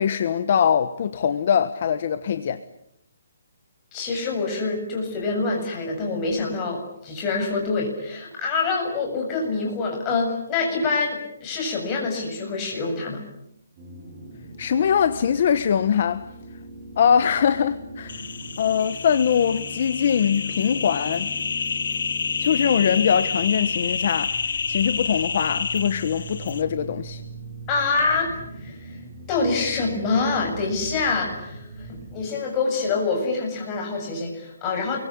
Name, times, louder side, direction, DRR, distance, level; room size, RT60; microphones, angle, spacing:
voice 1, 0.0-2.6 14.6-16.3 17.0-18.2 18.6-21.3 22.4-24.3 24.7-27.2, left 8 dB, 40° left, 1.2 m, -22 dB
voice 2, 3.9-13.2 27.7-29.0 29.3-35.0, left 4 dB, 15° left, 7.4 m, -26 dB
sound 1, 13.8-32.3, right 1 dB, 20° right, 6.4 m, -40 dB
sound 2, 18.1-26.6, left 5 dB, 65° left, 2.3 m, -29 dB
29.0 x 23.5 x 8.7 m
hypercardioid pair, 175°, 0 cm